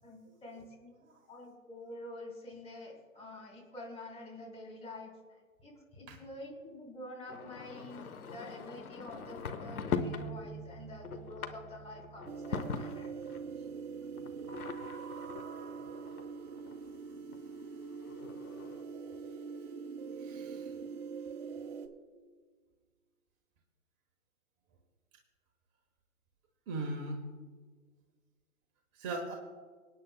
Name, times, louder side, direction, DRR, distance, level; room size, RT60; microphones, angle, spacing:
voice 1, 0.0-13.1 13.6-13.7, left 1 dB, 15° left, -2 dB, 3.5 m, -48 dB
sound 1, 7.3-10.3 10.7-13.4 14.2-16.8 17.3-17.4 17.7-17.8 17.9-18.8, left 6 dB, 80° left, 1.1 m, -41 dB
sound 2, 9.9-15.7, right 7 dB, 65° right, 1.2 m, -49 dB
sound 3, 12.3-21.9, right 5 dB, 45° right, 1.4 m, -43 dB
voice 2, 20.2-20.8 26.7-27.2 28.9-29.3, right 2 dB, 25° right, 2 dB, 1.2 m, -39 dB
25.0 x 9.4 x 2.2 m, 1.5 s
hypercardioid pair, 125°, 43 cm